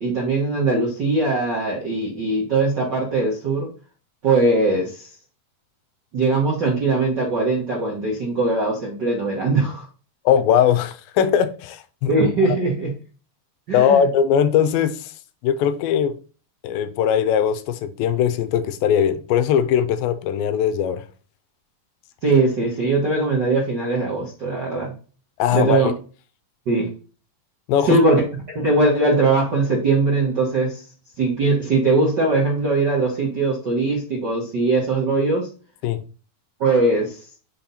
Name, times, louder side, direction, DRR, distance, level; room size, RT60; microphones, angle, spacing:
voice 1, 0.0-3.7 4.2-5.1 6.1-9.9 12.1-12.9 13.7-14.1 22.2-24.9 25.5-25.9 26.7-26.9 27.8-28.2 28.5-30.8 31.2-35.5 36.6-37.2, right 3 dB, 55° right, 1.2 m, -20 dB
voice 2, 10.3-12.1 13.7-14.9 15.4-16.2 16.6-21.0 25.4-25.9 27.7-28.0 35.8-36.0, left 9 dB, 85° left, 2.4 m, -20 dB
6.2 x 4.3 x 4.0 m
omnidirectional pair, 4.1 m